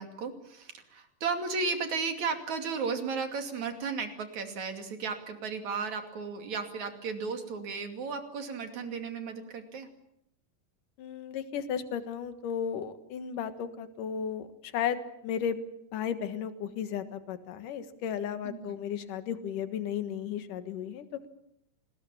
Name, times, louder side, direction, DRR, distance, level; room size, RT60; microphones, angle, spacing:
voice 1, 0.0-9.9 18.4-18.8, right 5 dB, 60° right, 6 dB, 3.9 m, -34 dB
voice 2, 11.0-15.6 15.9-21.3, left 8 dB, 75° left, 10 dB, 3.1 m, -34 dB
28.5 x 20.5 x 7.3 m, 0.76 s
omnidirectional pair, 3.8 m